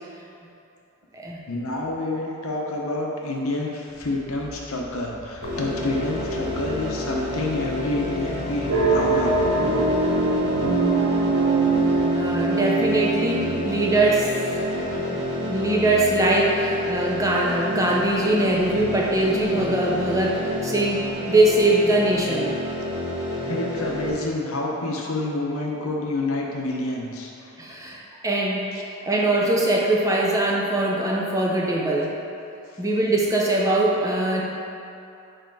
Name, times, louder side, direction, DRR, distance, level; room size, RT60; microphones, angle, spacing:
voice 1, 1.5-9.4 23.5-28.0 28.7-28.8 32.7-32.8, left 2 dB, 75° left, -1 dB, 0.8 m, -28 dB
sound 1, 4.0-12.5, right 2 dB, 30° left, 0.4 m, -41 dB
sound 2, 5.4-24.1, left 1 dB, 50° right, 1.3 m, -29 dB
sound 3, 8.7-14.1, right 3 dB, 75° right, 0.8 m, -22 dB
voice 2, 12.1-14.3 14.9-22.6 27.6-32.2 32.8-34.4, right 1 dB, 15° right, -3 dB, 0.6 m, -22 dB
4.6 x 4.5 x 4.6 m, 2.7 s
head